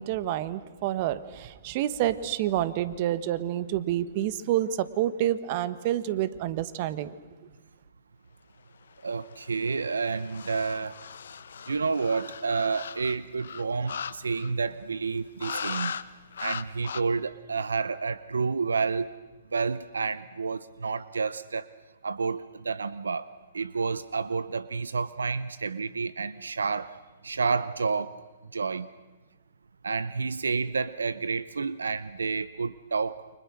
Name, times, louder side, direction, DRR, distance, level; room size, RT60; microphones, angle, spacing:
voice 1, 0.0-7.1, right 12 dB, 45° right, 15 dB, 1.3 m, -28 dB
voice 2, 9.0-11.0 11.7-16.0 16.4-19.1 19.5-21.7 22.0-23.3 23.5-27.0 27.2-28.2 28.5-28.9 29.8-33.2, right 4 dB, 85° right, 17 dB, 0.7 m, -30 dB
sound 1, 9.1-14.7 15.4-16.1 16.3-17.0, left 7 dB, 70° left, 0.9 m, -38 dB
29.5 x 25.0 x 6.3 m, 1.2 s
hypercardioid pair, 125°, 0 cm